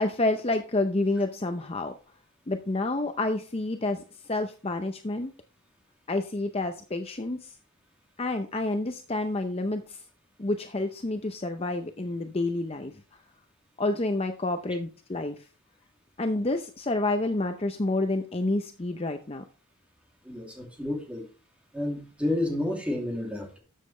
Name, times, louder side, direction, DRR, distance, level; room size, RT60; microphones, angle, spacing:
voice 1, 0.0-1.9 2.5-4.0 4.3-5.3 6.1-7.5 8.2-10.0 10.4-12.9 13.8-15.4 16.2-19.4, left 2 dB, 30° left, 6 dB, 0.7 m, -29 dB
voice 2, 20.2-21.2 21.7-23.6, left 1 dB, 5° right, 0 dB, 2.8 m, -30 dB
13.0 x 7.4 x 3.3 m, 0.36 s
head